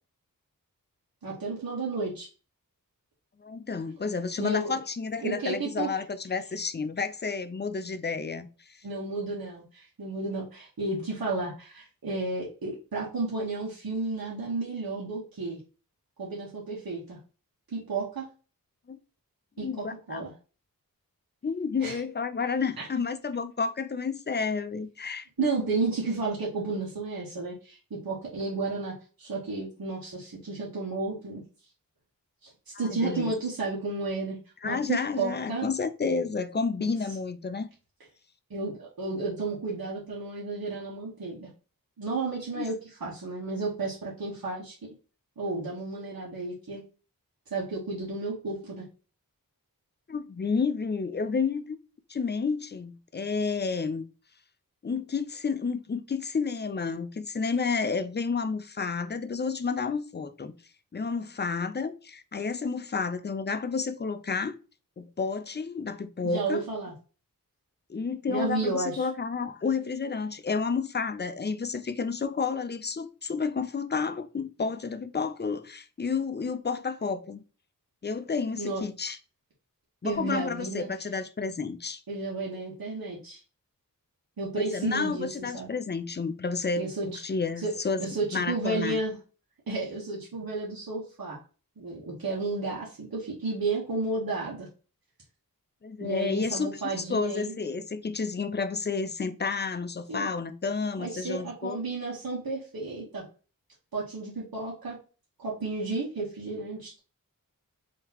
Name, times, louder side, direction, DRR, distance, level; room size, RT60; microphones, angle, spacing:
voice 1, 1.2-2.3 4.4-4.8 5.2-5.9 8.8-15.6 16.2-17.2 17.7-18.3 19.6-20.3 21.8-22.0 22.8-22.9 25.4-31.4 32.4-34.4 34.6-35.7 36.8-36.9 38.5-41.5 42.0-44.9 45.4-46.8 47.5-48.9 66.2-66.9 68.3-69.1 78.6-78.8 80.0-80.9 82.1-83.4 84.4-85.7 86.8-87.2 87.6-87.7 88.0-89.1 89.7-91.4 91.8-94.7 96.0-97.5 100.1-100.3 101.0-103.2 103.9-105.0 105.4-107.0, right 3 dB, 85° right, 1.2 m, -32 dB
voice 2, 3.4-8.8 18.9-19.0 19.6-20.2 21.4-25.6 32.7-33.3 34.6-37.7 42.5-42.7 50.1-51.8 52.1-54.0 54.8-60.6 60.9-64.6 65.0-66.6 67.9-77.4 78.0-79.2 80.0-82.0 84.5-89.0 95.8-101.8, left 5 dB, 30° left, 0.5 m, -31 dB
3.8 x 2.8 x 2.8 m
wide cardioid pair, 65°, 35 cm